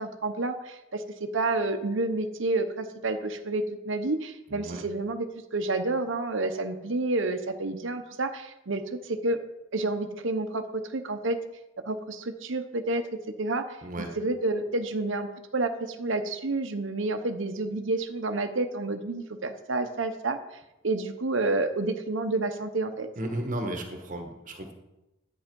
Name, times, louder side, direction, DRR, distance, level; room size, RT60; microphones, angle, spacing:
voice 1, 0.0-5.3 5.5-9.4 9.7-11.4 11.9-13.0 13.4-13.8 14.2-20.4 20.8-23.1, right 2 dB, 65° right, 6 dB, 0.9 m, -29 dB
voice 2, 4.5-4.8 13.8-14.1 23.2-24.7, right 1 dB, 40° right, 4 dB, 1.4 m, -34 dB
10.5 x 8.9 x 5.3 m, 0.95 s
head